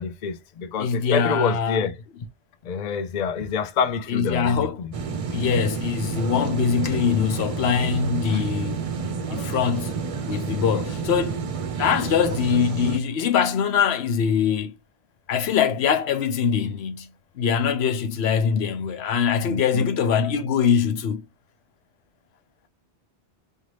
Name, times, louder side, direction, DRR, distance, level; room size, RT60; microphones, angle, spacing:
voice 1, 0.0-1.9 2.6-4.9 19.4-19.9, left 6 dB, 50° left, 0.6 m, -27 dB
voice 2, 0.8-1.9 4.1-4.8 5.3-8.8 9.3-10.0 10.3-11.4 11.8-14.7 15.3-17.1 17.4-21.2, left 7 dB, 80° left, 0.9 m, -23 dB
sound 1, 4.9-13.0, right 5 dB, 45° right, 0.5 m, -29 dB
4.9 x 2.7 x 3.2 m
omnidirectional pair, 1.1 m